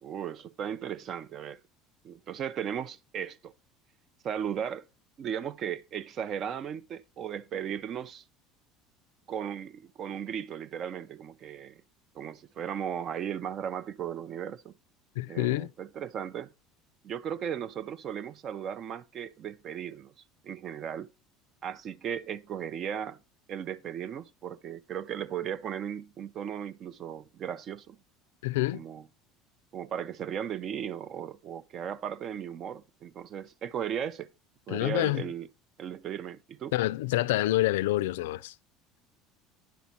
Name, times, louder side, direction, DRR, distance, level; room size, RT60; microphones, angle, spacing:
voice 1, 0.0-1.6 2.0-3.5 4.2-4.9 5.2-8.2 9.3-11.8 12.1-14.7 15.3-16.5 17.0-20.1 20.4-21.1 21.6-23.2 23.5-28.0 28.7-29.1 29.7-34.3 34.7-35.5 35.8-36.7, right 8 dB, 50° right, 0.6 m, -36 dB
voice 2, 15.2-15.7 28.4-28.8 34.7-35.2 36.7-38.5, left 16 dB, 85° left, 0.3 m, -27 dB
10.5 x 4.0 x 5.8 m
supercardioid pair, 90°, 0 cm